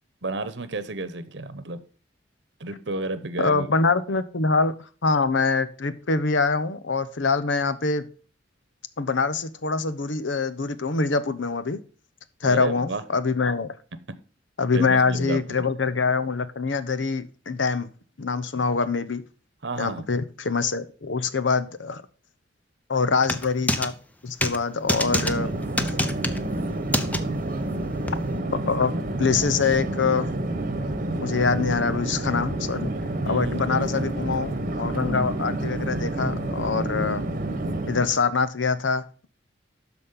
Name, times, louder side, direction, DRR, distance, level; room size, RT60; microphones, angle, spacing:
voice 1, 0.2-1.8 2.6-3.7 12.4-13.1 14.7-15.7 19.6-20.1 33.2-34.3, right 2 dB, 70° right, 13 dB, 0.9 m, -32 dB
voice 2, 3.4-4.7 5.0-8.1 9.0-11.8 12.4-13.7 14.6-17.9 18.2-19.2 19.8-22.0 22.9-23.9 24.2-25.5 28.7-28.9 29.2-30.3 31.2-32.9 33.3-37.2 37.9-39.0, left 4 dB, 85° left, 14 dB, 0.9 m, -24 dB
sound 1, 23.2-23.9 24.4-24.6 24.9-25.3 25.8-26.4 26.9-27.2 28.1-28.2, left 1 dB, 10° left, 0.7 m, -25 dB
Chatter / Fixed-wing aircraft airplane, 24.8-38.2, right 1 dB, 45° right, 1.1 m, -29 dB
12.5 x 4.2 x 5.6 m, 0.39 s
head